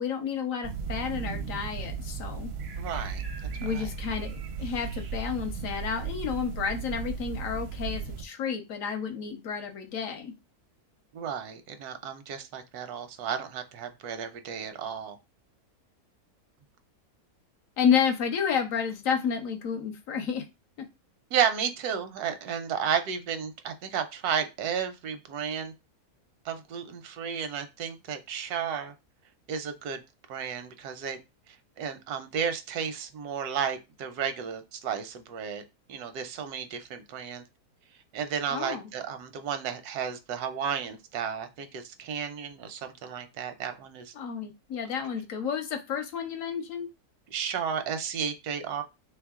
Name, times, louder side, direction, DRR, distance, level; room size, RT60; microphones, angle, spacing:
voice 1, 0.0-2.5 3.6-10.3 17.8-20.4 38.5-38.9 44.1-46.9, left 7 dB, 70° left, 1.0 m, -30 dB
sound 1, 0.6-8.2, right 5 dB, 60° right, 0.6 m, -35 dB
voice 2, 2.8-3.2 3.7-3.9 11.1-15.2 21.3-25.7 26.4-28.9 29.5-30.0 30.3-31.2 31.8-35.6 35.9-37.4 38.1-44.1 47.3-48.8, right 7 dB, 85° right, 1.2 m, -33 dB
3.2 x 2.9 x 3.5 m
omnidirectional pair, 1.6 m